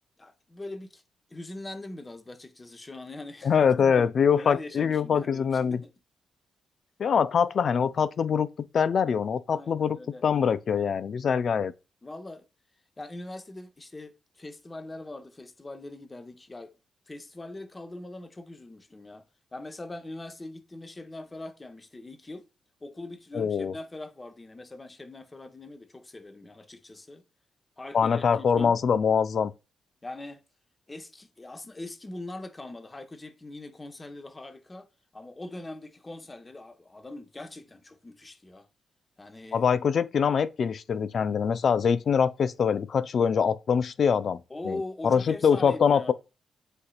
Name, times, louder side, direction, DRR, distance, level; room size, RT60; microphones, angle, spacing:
voice 1, 0.2-1.0 1.3-5.9 9.5-10.2 12.0-12.5 13.0-16.7 17.1-19.3 19.5-22.4 22.8-27.2 27.8-28.8 30.0-30.4 30.9-38.7 39.2-39.7 44.5-46.1, left 2 dB, 30° left, 0.8 m, -42 dB
voice 2, 3.4-5.8 7.0-8.5 8.7-11.7 23.3-23.7 27.9-29.5 39.5-46.1, left 6 dB, 60° left, 0.3 m, -24 dB
7.9 x 2.8 x 2.4 m
hypercardioid pair, 40°, 0 cm